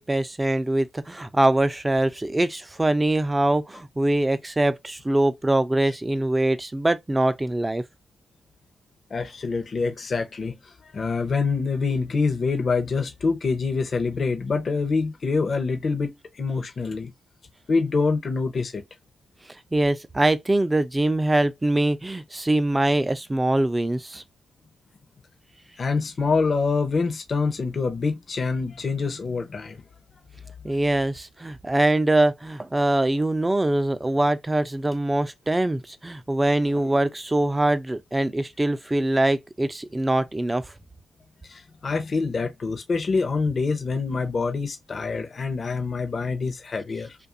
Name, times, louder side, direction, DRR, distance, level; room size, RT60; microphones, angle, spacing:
voice 1, 0.0-7.8 19.5-24.2 30.6-40.6, right 1 dB, 20° right, 0.5 m, -23 dB
voice 2, 9.1-10.5 10.9-17.1 17.7-18.8 25.8-29.8 41.5-47.2, left 4 dB, 50° left, 0.7 m, -25 dB
2.6 x 2.3 x 2.5 m
supercardioid pair, 55°, 0 cm